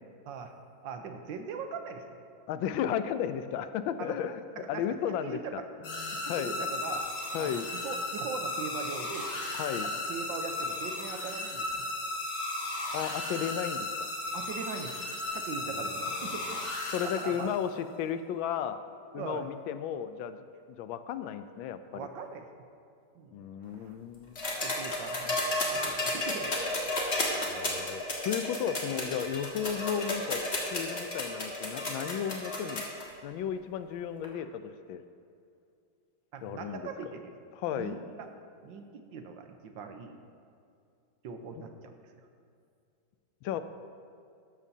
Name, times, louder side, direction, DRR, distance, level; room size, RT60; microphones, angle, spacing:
voice 1, 0.8-2.2 4.0-4.2 4.6-5.6 6.2-7.1 7.4-9.4 9.8-11.9 14.3-15.1 15.3-16.6 17.0-17.5 19.1-19.5 21.9-22.5 23.1-24.0 24.6-26.5 27.1-27.2 36.3-37.3 37.7-38.3 38.6-40.2 41.2-42.1, right 5 dB, 70° right, 6 dB, 1.5 m, -41 dB
voice 2, 2.5-4.4 4.7-5.6 5.9-6.5 7.3-7.7 9.5-9.9 12.9-14.1 15.6-16.3 16.9-18.8 19.1-22.1 23.3-24.4 27.5-30.4 30.7-32.9 33.2-35.0 36.4-36.8 37.5-38.0 41.6-41.7 43.4-43.6, left 9 dB, 80° left, 10 dB, 1.3 m, -34 dB
sound 1, 5.8-17.7, left 2 dB, 60° left, 2.3 m, -35 dB
sound 2, 24.4-33.0 34.2-34.3, left 1 dB, 30° left, 1.8 m, -32 dB
13.5 x 12.5 x 2.8 m, 2.4 s
omnidirectional pair, 2.2 m